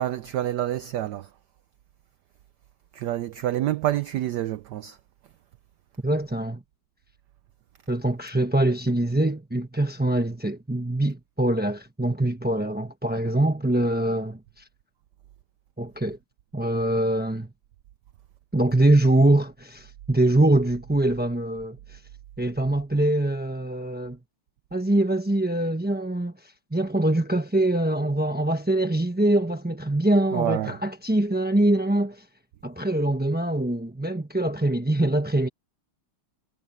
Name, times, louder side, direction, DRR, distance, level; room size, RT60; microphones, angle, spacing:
voice 1, 0.0-1.3 2.9-5.0 30.3-30.8, right 13 dB, 80° right, 0.9 m, -27 dB
voice 2, 6.0-6.6 7.9-14.6 15.8-16.2 16.5-17.5 18.5-22.0 22.4-24.2 24.7-32.2 32.6-35.5, right 1 dB, 10° right, 0.4 m, -23 dB
omnidirectional pair, 2.4 m